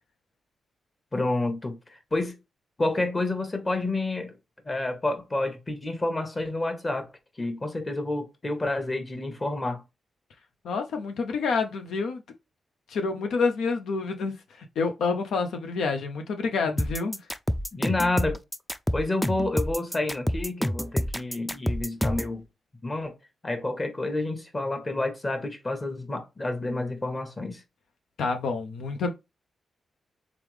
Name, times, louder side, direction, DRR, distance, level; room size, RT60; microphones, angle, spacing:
voice 1, 1.1-2.4 2.8-4.4 4.6-7.1 7.4-9.8 17.7-18.4 18.9-22.4 22.8-23.1 23.4-27.6, left 2 dB, 30° left, 1.2 m, -29 dB
voice 2, 10.6-12.2 12.9-17.2 28.2-29.1, left 4 dB, 85° left, 0.5 m, -28 dB
sound 1, 16.8-22.3, equal, 5° left, 0.4 m, -28 dB
3.6 x 3.4 x 3.2 m
cardioid pair, 65°, 0 cm